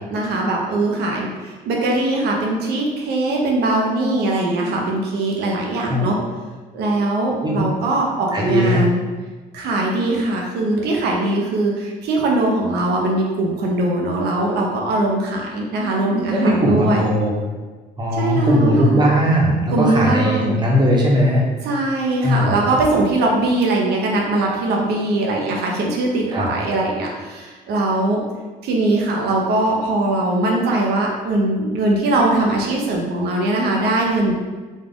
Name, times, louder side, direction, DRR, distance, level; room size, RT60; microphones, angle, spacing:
voice 1, 0.1-6.2 6.7-9.0 9.5-17.0 18.1-19.0 19.7-20.6 21.6-28.2 28.6-34.3, right 2 dB, 75° right, -1 dB, 0.9 m, -21 dB
voice 2, 5.9-6.2 7.4-7.6 8.3-8.8 16.3-17.3 18.0-21.4 22.2-22.6 26.3-26.6, equal, 25° right, -3 dB, 1.0 m, -18 dB
4.0 x 2.4 x 3.7 m, 1.3 s
cardioid pair, 110°, 17 cm